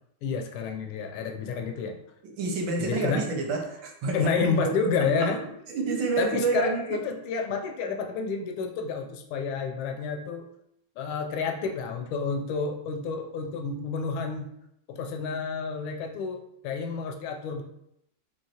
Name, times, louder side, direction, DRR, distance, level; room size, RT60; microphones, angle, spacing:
voice 1, 0.2-2.0 2.8-3.3 4.1-5.4 6.2-10.5 11.0-14.5 14.9-17.6, left 5 dB, 80° left, 4 dB, 1.4 m, -30 dB
voice 2, 2.4-4.7 5.2-5.3 5.7-7.0, right 4 dB, 70° right, 1 dB, 1.3 m, -28 dB
4.6 x 2.9 x 2.8 m, 0.76 s
omnidirectional pair, 2.3 m